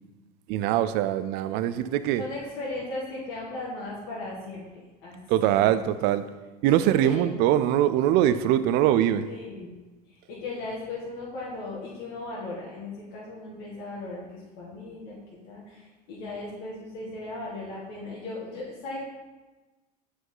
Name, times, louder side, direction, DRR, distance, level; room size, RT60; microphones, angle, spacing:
voice 1, 0.5-2.2 5.3-6.2 6.6-9.3, right 12 dB, 55° right, 12 dB, 0.4 m, -22 dB
voice 2, 2.2-5.7 7.0-7.4 9.3-9.7 10.1-15.2 15.5-19.0, left 2 dB, 55° left, -6 dB, 1.8 m, -37 dB
7.8 x 4.8 x 3.8 m, 1.2 s
supercardioid pair, 120°, 20 cm